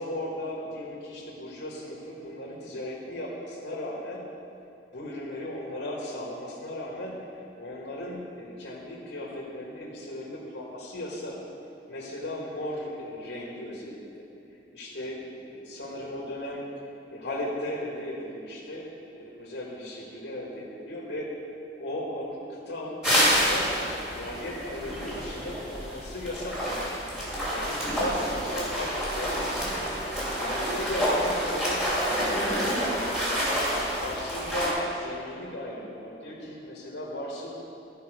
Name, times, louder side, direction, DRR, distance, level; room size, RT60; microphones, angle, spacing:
voice 1, 0.0-4.2 4.9-11.3 11.9-14.2 14.7-16.6 17.1-21.3 21.8-23.7 24.1-26.9 27.5-29.9 30.3-31.8 32.2-32.7 33.2-33.6 33.9-37.5, left 1 dB, 90° left, -4 dB, 1.7 m, -36 dB
sound 1, 23.0-34.7, equal, 5° right, 2.6 m, -28 dB
14.0 x 5.5 x 5.0 m, 2.8 s
head